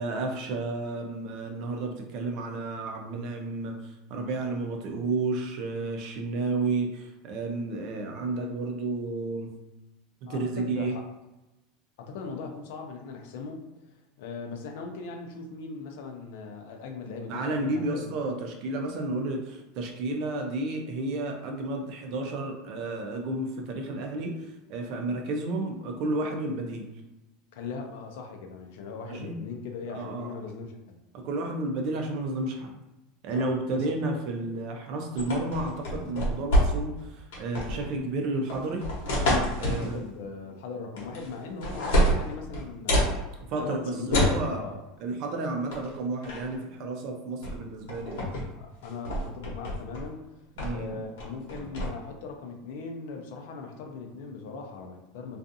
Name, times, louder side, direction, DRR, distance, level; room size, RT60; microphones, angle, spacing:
voice 1, 0.0-3.8 4.1-9.6 10.3-10.9 17.3-26.9 29.1-29.4 29.9-30.3 31.1-32.7 33.2-38.9 39.6-40.0 43.5-44.6 45.0-48.3 50.6-51.0, right 2 dB, 45° right, 3 dB, 0.5 m, -31 dB
voice 2, 10.3-11.1 12.0-13.6 14.2-18.2 27.5-31.0 33.3-33.8 39.7-44.8 48.5-50.2 50.7-55.4, left 4 dB, 70° left, 3 dB, 0.5 m, -39 dB
sound 1, 35.2-37.0 37.3-37.9 38.5-39.9 41.0-41.3 41.6-43.1 44.1-44.4 45.7-45.9 46.2-46.6 47.4-47.6 47.9-48.4 48.8-50.1 50.6-50.9 51.2-51.9, equal, 85° left, 1.0 m, -26 dB
2.5 x 2.4 x 2.6 m, 1.0 s
supercardioid pair, 165°, 0 cm